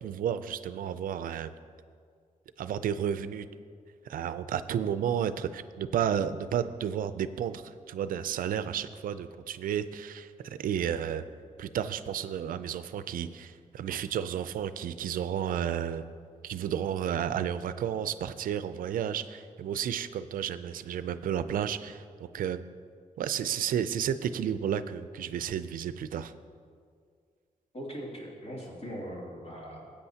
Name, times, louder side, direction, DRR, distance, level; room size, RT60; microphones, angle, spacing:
voice 1, 0.0-1.5 2.6-3.5 4.1-11.2 11.6-16.0 16.4-22.6 23.2-26.3, right 9 dB, 85° right, 12 dB, 0.4 m, -32 dB
voice 2, 27.7-29.9, equal, 45° left, -4 dB, 2.7 m, -40 dB
16.0 x 8.5 x 2.8 m, 2.1 s
cardioid pair, 100°, 14 cm